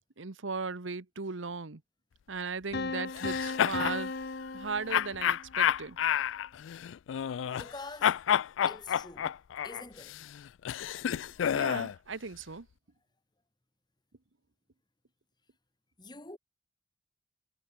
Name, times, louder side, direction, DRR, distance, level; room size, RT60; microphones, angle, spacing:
voice 1, 0.2-1.8 2.3-4.1 4.5-6.0 11.2-11.3 11.5-12.7, right 4 dB, 85° right, 1.1 m, -37 dB
sound 1, 2.7-5.6, left 3 dB, 55° left, 1.1 m, -36 dB
sound 2, 3.1-4.0 4.9-7.7 8.0-11.9, left 9 dB, 80° left, 0.3 m, -30 dB
voice 2, 7.5-8.2 8.6-9.3 9.6-10.2 16.0-16.4, left 3 dB, 25° left, 3.2 m, -45 dB
head